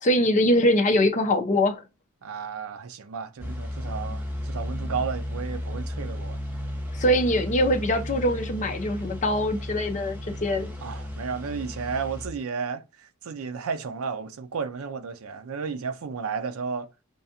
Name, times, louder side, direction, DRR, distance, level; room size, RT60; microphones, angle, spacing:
voice 1, 0.0-1.8 6.9-10.7, left 1 dB, 35° left, 0.6 m, -23 dB
voice 2, 2.2-6.4 10.8-16.9, right 5 dB, 70° right, 0.5 m, -33 dB
sound 1, 3.4-12.3, left 1 dB, 10° right, 0.8 m, -34 dB
5.3 x 2.3 x 2.7 m
head